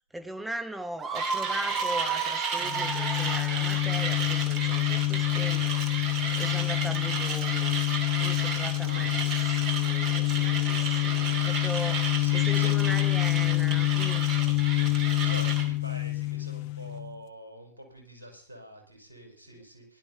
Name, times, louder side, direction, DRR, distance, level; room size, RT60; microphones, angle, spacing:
voice 1, 0.1-5.8 6.4-7.7 8.2-12.0 12.3-14.3, right 1 dB, 5° right, 8 dB, 1.0 m, -39 dB
Screaming, 1.0-3.9, right 5 dB, 20° right, 1.3 m, -32 dB
Mechanisms, 1.1-15.7, right 4 dB, 40° right, 2.6 m, -33 dB
sound 1, 2.6-17.2, left 20 dB, 50° left, 0.8 m, -27 dB
voice 2, 8.8-9.2 11.2-13.2 14.8-20.0, equal, 80° right, 1 dB, 5.5 m, -46 dB
19.5 x 12.0 x 4.2 m, 0.41 s
figure-of-eight pair, 90°, 0 cm